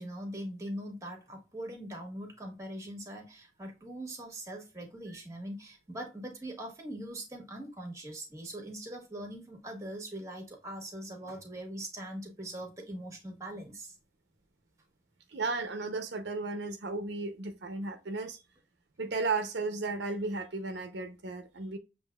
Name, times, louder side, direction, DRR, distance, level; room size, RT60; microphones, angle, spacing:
voice 1, 0.0-14.0, right 1 dB, 15° right, 1.3 m, -42 dB
voice 2, 15.3-18.4 19.0-21.8, right 3 dB, 75° right, 0.7 m, -34 dB
7.2 x 2.9 x 2.3 m
head